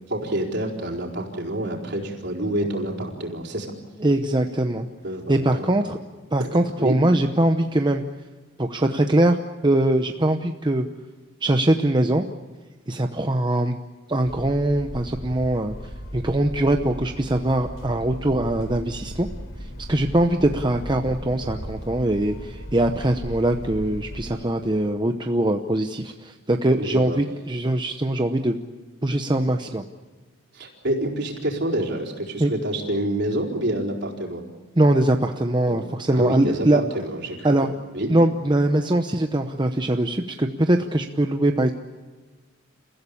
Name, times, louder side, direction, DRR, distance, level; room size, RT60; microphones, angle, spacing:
voice 1, 0.1-3.7 5.0-5.7 6.4-7.0 26.8-27.2 30.5-34.4 35.7-35.8 36.1-37.5 37.9-38.1, right 1 dB, 55° right, 1 dB, 4.4 m, -27 dB
voice 2, 4.0-4.9 5.3-6.0 6.3-8.0 8.6-9.4 9.6-10.9 11.4-12.2 12.9-13.8 14.1-15.7 16.1-19.3 19.9-28.6 29.0-29.9 32.4-32.5 34.8-36.8 37.4-37.7 38.1-41.7, right 1 dB, 20° right, 5 dB, 0.8 m, -22 dB
sound 1, 14.2-24.3, equal, 65° left, 3.5 m, -37 dB
29.5 x 15.5 x 8.6 m, 1.3 s
head